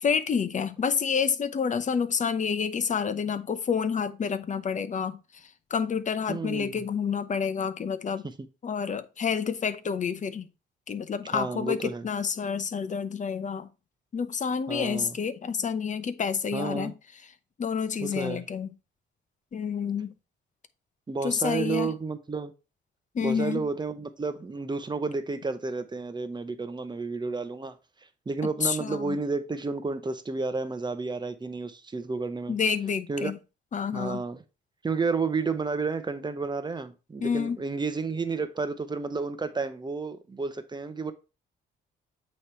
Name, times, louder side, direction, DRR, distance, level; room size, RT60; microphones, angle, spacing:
voice 1, 0.0-5.2 5.7-8.3 8.6-10.5 10.9-13.7 14.1-16.9 17.6-18.7 19.5-20.1 21.2-21.9 23.1-23.7 28.6-29.2 32.5-33.4 33.7-34.2 37.2-37.6, left 6 dB, 40° left, 0.8 m, -29 dB
voice 2, 6.3-6.8 8.4-8.5 11.3-12.1 14.7-15.2 16.5-16.9 18.0-18.5 21.1-22.5 23.2-27.8 28.3-32.6 33.1-33.3 33.9-34.4 34.8-41.1, right 4 dB, 20° right, 0.9 m, -31 dB
8.5 x 3.2 x 4.3 m
cardioid pair, 90°, 20 cm